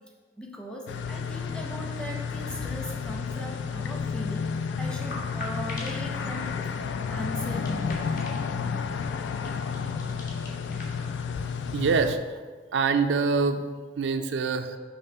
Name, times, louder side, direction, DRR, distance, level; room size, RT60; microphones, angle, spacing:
voice 1, 0.4-8.3, equal, 5° left, 0 dB, 0.7 m, -39 dB
sound 1, 0.9-12.2, left 5 dB, 90° left, 0.3 m, -31 dB
sound 2, 4.9-11.1, left 2 dB, 50° left, 1.1 m, -43 dB
voice 2, 11.7-12.4 12.7-13.6 14.0-14.8, right 4 dB, 90° right, 8 dB, 0.4 m, -25 dB
5.7 x 3.1 x 5.4 m, 1.5 s
head